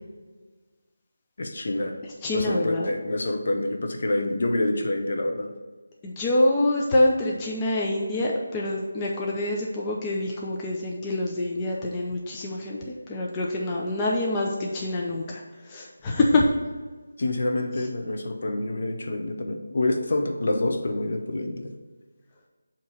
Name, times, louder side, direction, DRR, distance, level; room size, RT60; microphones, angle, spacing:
voice 1, 1.4-2.0 2.3-5.5 17.2-21.7, left 2 dB, 55° left, 4 dB, 0.8 m, -27 dB
voice 2, 2.2-2.9 6.0-15.4 15.7-16.5, left 1 dB, 15° left, -3 dB, 0.6 m, -25 dB
7.1 x 3.0 x 5.8 m, 1.3 s
figure-of-eight pair, 170°, 0 cm